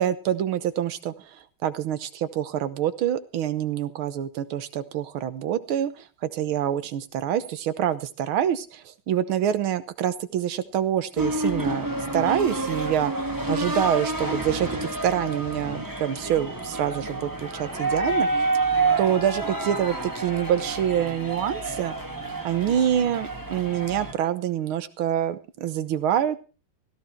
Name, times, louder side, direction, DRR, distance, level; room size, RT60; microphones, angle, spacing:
voice 1, 0.0-6.1 6.3-11.9 12.1-13.1 13.5-18.3 19.0-21.9 22.4-26.4, right 10 dB, 80° right, 13 dB, 1.8 m, -26 dB
sound 1, 11.2-24.1, right 2 dB, 10° right, 1.8 m, -28 dB
16.5 x 14.0 x 4.5 m, 0.35 s
omnidirectional pair, 2.3 m